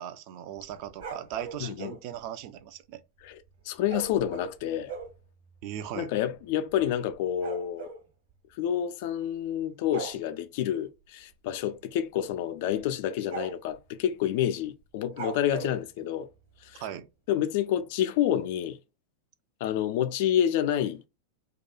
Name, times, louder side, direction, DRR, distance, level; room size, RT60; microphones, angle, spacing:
voice 1, 0.0-3.0 5.6-6.1 16.8-17.1, right 10 dB, 45° right, 0.3 m, -38 dB
sound 1, 0.6-2.0 3.9-5.2 5.9-6.0 6.2-6.4 6.7-8.0 9.1-9.5 9.8-10.2 11.5-11.8 12.2-12.3 12.8-12.9 13.3-13.8 15.1-15.8, right 5 dB, 60° right, 1.0 m, -39 dB
voice 2, 1.6-1.9 3.2-3.4 3.7-4.9 6.0-7.9 8.6-16.3 16.6-16.8 17.3-18.8 19.6-21.1, left 10 dB, 50° left, 0.3 m, -28 dB
2.3 x 2.2 x 2.8 m
figure-of-eight pair, 90°, 0 cm